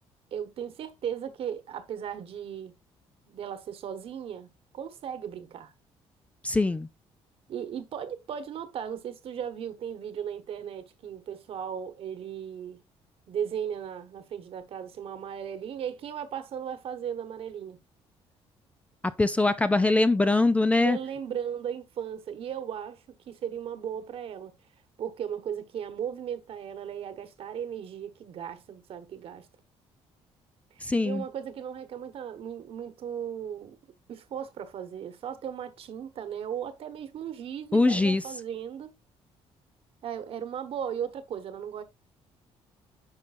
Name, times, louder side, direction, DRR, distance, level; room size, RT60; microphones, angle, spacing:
voice 1, 0.3-2.7 3.3-5.7 7.5-12.8 13.3-17.8 20.8-24.5 25.0-29.5 30.7-33.8 34.1-38.9 40.0-41.8, right 8 dB, 55° right, 1.2 m, -36 dB
voice 2, 6.4-6.9 19.2-21.0 30.8-31.2 37.7-38.2, left 2 dB, 10° left, 0.4 m, -22 dB
9.9 x 5.3 x 2.5 m
cardioid pair, 130°, 11 cm